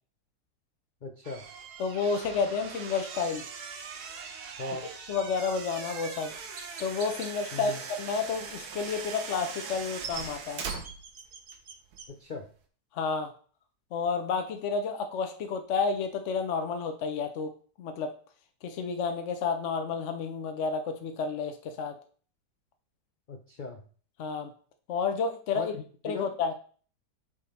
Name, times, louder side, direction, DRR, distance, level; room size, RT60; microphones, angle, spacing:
voice 1, 1.0-1.4 4.6-4.9 7.5-7.8 12.1-12.5 23.3-23.8 25.5-25.7 26.0-26.3, left 3 dB, 80° left, 4 dB, 0.4 m, -38 dB
sound 1, 1.2-11.6 11.9-12.2, right 5 dB, 75° right, 1.4 m, -41 dB
voice 2, 1.8-3.4 5.1-6.3 6.8-10.6 12.9-13.3 13.9-17.5 17.8-18.2 18.6-21.9 24.2-24.5 24.9-25.7 26.0-26.5, left 5 dB, 55° left, 6 dB, 0.9 m, -30 dB
Chirp tweet, 6.5-7.3 10.3-12.1, right 4 dB, 50° right, 0.9 m, -46 dB
6.7 x 3.7 x 4.1 m, 0.42 s
omnidirectional pair, 1.7 m